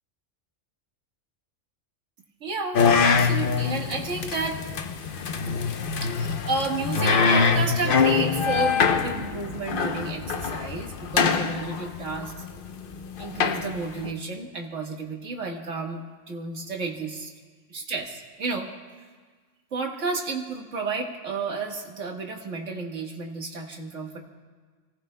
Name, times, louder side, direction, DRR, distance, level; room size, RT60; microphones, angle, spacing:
voice 1, 2.4-4.6 6.0-12.3 13.2-17.3 17.7-18.7 19.7-24.2, right 3 dB, 70° right, 1 dB, 1.9 m, -32 dB
sound 1, 2.7-14.1, left 5 dB, 50° left, 0.8 m, -24 dB
30.0 x 15.0 x 2.2 m, 1.5 s
omnidirectional pair, 1.3 m